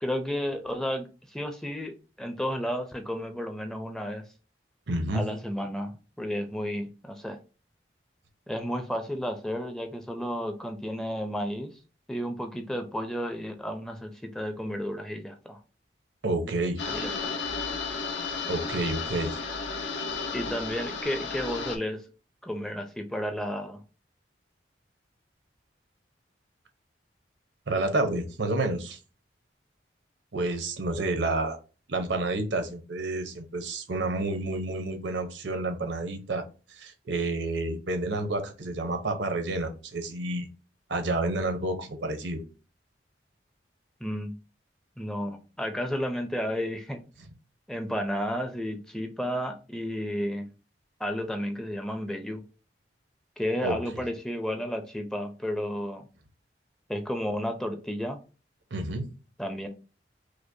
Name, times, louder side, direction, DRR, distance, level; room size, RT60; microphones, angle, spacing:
voice 1, 0.0-4.2 5.1-7.4 8.5-11.7 12.1-15.6 16.9-17.4 20.3-22.1 22.4-23.8 44.0-44.3 45.0-47.0 47.7-50.5 51.0-52.4 53.4-56.0 56.9-58.2 59.4-59.7, equal, 5° left, 5 dB, 0.4 m, -32 dB
voice 2, 4.9-5.2 16.2-16.8 18.5-19.4 27.7-29.0 30.3-31.6 31.9-36.4 36.7-40.5 40.9-42.4 53.6-53.8 58.7-59.1, right 2 dB, 85° right, 7 dB, 0.8 m, -29 dB
sound 1, 16.8-21.8, left 4 dB, 75° left, 0.7 m, -33 dB
5.0 x 2.1 x 2.6 m, 0.33 s
head